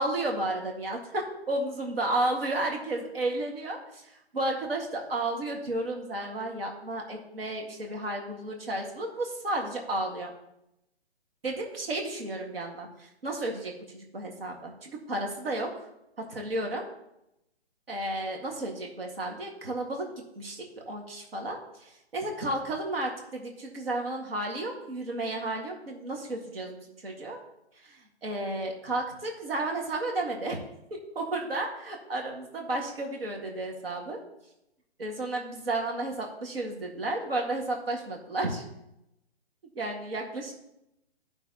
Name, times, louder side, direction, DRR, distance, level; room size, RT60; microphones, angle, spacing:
voice 1, 0.0-10.3 11.4-15.9 16.3-16.8 17.9-20.1 20.4-27.4 27.8-30.6 30.9-34.2 35.0-38.6 39.8-40.5, right 2 dB, 60° right, 1 dB, 1.8 m, -32 dB
14.0 x 5.6 x 2.9 m, 0.85 s
figure-of-eight pair, 140°, 32 cm